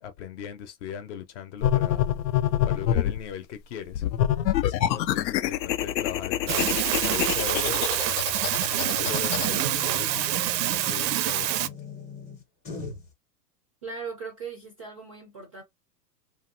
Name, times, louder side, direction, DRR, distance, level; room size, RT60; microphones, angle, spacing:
voice 1, 0.0-2.0 2.7-4.0 4.6-8.0 8.7-11.7, left 9 dB, 45° left, 0.7 m, -38 dB
sound 1, 1.6-3.2 3.9-9.5, left 11 dB, 90° left, 0.6 m, -26 dB
sound 2, 6.5-11.7, right 14 dB, 85° right, 0.5 m, -26 dB
sound 3, 7.3-13.1, left 3 dB, 15° left, 0.7 m, -41 dB
voice 2, 13.8-15.6, right 5 dB, 25° right, 0.3 m, -38 dB
3.0 x 2.6 x 2.6 m
hypercardioid pair, 145°, 50 cm